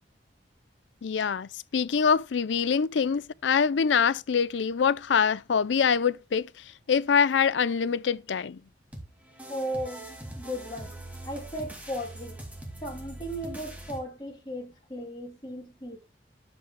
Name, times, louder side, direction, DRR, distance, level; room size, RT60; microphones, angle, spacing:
voice 1, 1.0-6.5 6.9-8.6, left 6 dB, 85° left, 0.5 m, -24 dB
sound 1, 8.9-14.0, right 1 dB, 10° right, 2.1 m, -42 dB
voice 2, 9.5-10.9 11.2-12.4 12.8-16.0, equal, 25° left, 2.6 m, -36 dB
11.0 x 7.4 x 2.2 m
head